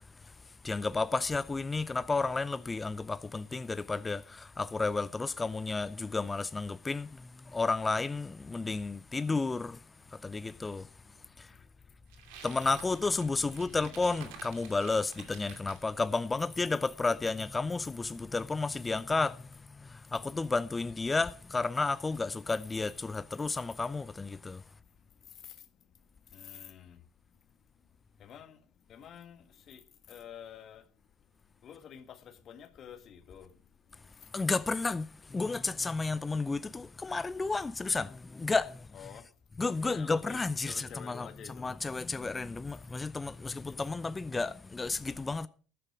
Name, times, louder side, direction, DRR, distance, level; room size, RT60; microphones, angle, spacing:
voice 1, 0.6-7.1 7.5-9.8 10.2-10.8 12.4-19.4 20.1-24.6 34.3-39.1 39.6-45.5, left 3 dB, 20° left, 0.6 m, -32 dB
sound 1, 12.1-15.8, right 7 dB, 65° right, 2.6 m, -50 dB
voice 2, 13.5-14.0 25.4-25.5 26.3-27.0 28.2-28.6 28.9-30.8 31.6-33.5 38.9-39.3 39.8-40.4 40.7-41.8, left 9 dB, 45° left, 1.8 m, -49 dB
13.0 x 11.0 x 4.7 m
hypercardioid pair, 65°, 0 cm